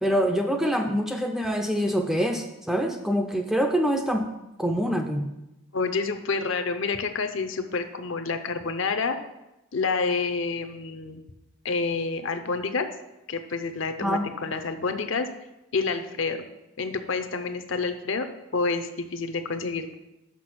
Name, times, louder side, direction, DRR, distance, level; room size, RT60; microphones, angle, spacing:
voice 1, 0.0-4.3 4.6-5.3 14.0-14.3, equal, ahead, 4 dB, 0.4 m, -25 dB
voice 2, 5.7-9.2 9.7-11.2 11.6-12.9 13.3-15.3 15.7-16.4 16.8-18.3 18.5-19.9, left 4 dB, 60° left, 8 dB, 0.6 m, -28 dB
6.0 x 5.8 x 6.0 m, 0.94 s
head